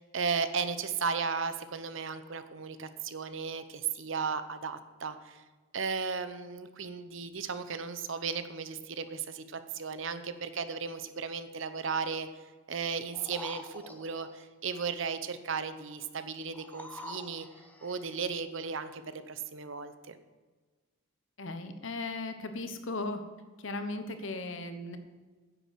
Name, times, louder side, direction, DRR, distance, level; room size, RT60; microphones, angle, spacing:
voice 1, 0.0-5.4 5.7-12.3 12.7-17.5 17.8-20.2, right 5 dB, 65° right, 11 dB, 0.8 m, -35 dB
sound 1, 13.1-14.5 16.5-18.2 18.8-18.9, left 1 dB, 10° left, 0.8 m, -47 dB
voice 2, 21.4-23.2 23.6-25.0, left 2 dB, 65° left, 8 dB, 1.1 m, -37 dB
9.9 x 8.3 x 6.3 m, 1.4 s
head